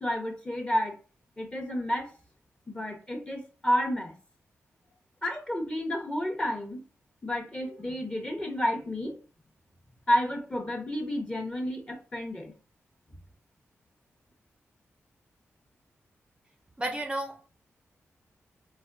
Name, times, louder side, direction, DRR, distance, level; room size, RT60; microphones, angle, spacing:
voice 1, 0.0-1.0 1.4-2.1 2.7-4.2 5.2-6.8 7.2-9.2 10.1-12.5, equal, 20° left, 0.8 m, -30 dB
voice 2, 16.8-17.5, right 1 dB, 20° right, 0.5 m, -32 dB
4.2 x 2.5 x 2.4 m
cardioid pair, 60°, 5 cm